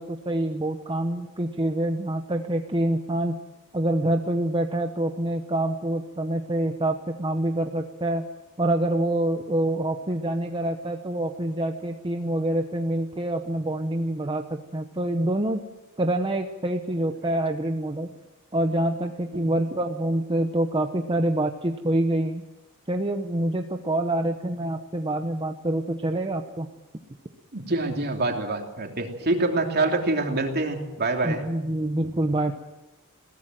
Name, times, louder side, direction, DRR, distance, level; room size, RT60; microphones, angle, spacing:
voice 1, 0.0-3.3 3.7-8.2 8.6-15.6 16.0-18.1 18.5-22.4 22.9-26.7 31.2-32.5, right 1 dB, 25° right, 5 dB, 1.0 m, -26 dB
voice 2, 27.5-31.4, right 2 dB, 45° right, 2 dB, 3.2 m, -26 dB
21.5 x 17.5 x 7.7 m, 1.0 s
head